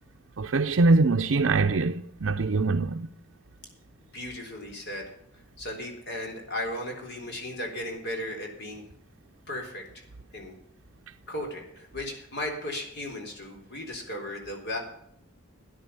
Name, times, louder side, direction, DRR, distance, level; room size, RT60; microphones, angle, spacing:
voice 1, 0.4-3.1, right 3 dB, 65° right, 0.6 m, -23 dB
voice 2, 4.1-5.1 5.6-8.8 9.5-10.0 10.3-10.5 11.3-14.8, left 1 dB, 55° left, 3.8 m, -36 dB
13.0 x 10.5 x 5.6 m
head